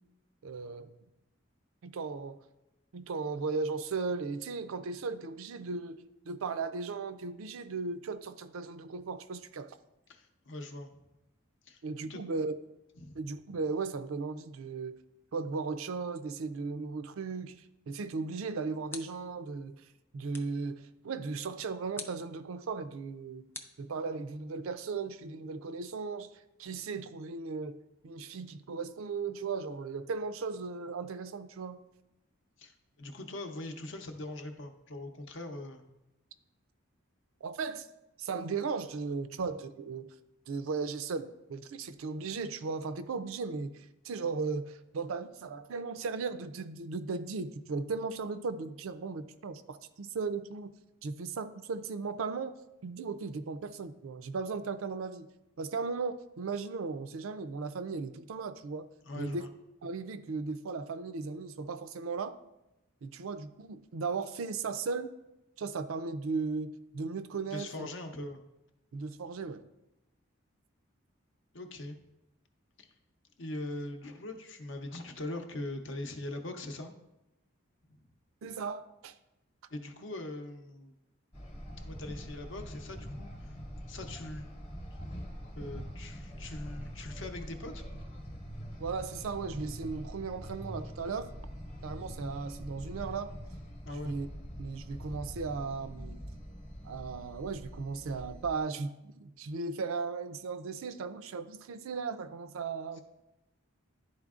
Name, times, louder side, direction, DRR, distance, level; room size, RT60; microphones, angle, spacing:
voice 1, 0.4-0.9 1.8-2.4 2.9-9.7 11.8-12.6 13.2-15.0 15.3-19.8 20.1-23.5 23.8-26.3 26.6-31.8 37.4-37.9 38.2-40.1 40.5-50.7 51.0-52.6 52.8-55.3 55.6-58.9 59.2-59.5 59.8-62.4 63.0-65.1 65.6-67.9 68.9-69.6 78.4-79.1 88.8-91.3 91.8-93.3 94.0-94.3 94.6-96.2 96.8-103.0, right 4 dB, 80° right, 0.4 m, -36 dB
voice 2, 10.1-10.9 11.7-11.8 12.1-12.2 13.0-13.2 32.6-35.8 59.0-59.5 67.5-68.4 71.5-72.0 72.8-72.9 73.4-76.9 79.7-80.9 81.8-83.3 83.9-84.5 85.6-87.8 93.9-94.3, left 2 dB, 60° left, 0.7 m, -41 dB
sound 1, 18.9-19.4 20.3-20.7 22.0-22.3 23.5-24.4, left 3 dB, 10° left, 0.3 m, -47 dB
sound 2, 81.3-98.6, equal, 30° left, 0.9 m, -44 dB
11.0 x 4.3 x 2.4 m
head